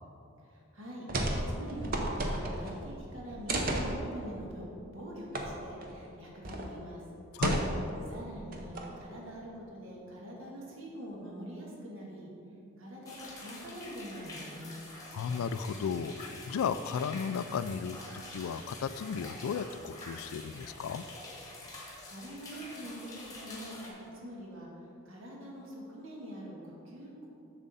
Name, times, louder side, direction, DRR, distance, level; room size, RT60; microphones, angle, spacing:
voice 1, 0.5-4.7 4.9-7.0 8.1-12.3 12.8-14.8 22.0-24.7 25.0-27.3, equal, 70° right, -3 dB, 1.6 m, -44 dB
sound 1, 1.1-1.4 1.7-2.8 3.5-3.9 5.3-5.5 5.8-5.9 6.4-6.7 7.4-8.0 8.5-9.0, right 1 dB, 40° right, 0.7 m, -32 dB
sound 2, 13.1-23.9, left 2 dB, 15° left, 1.0 m, -47 dB
voice 2, 15.1-21.0, left 6 dB, 85° left, 13 dB, 0.3 m, -34 dB
7.1 x 6.6 x 4.1 m, 2.8 s
head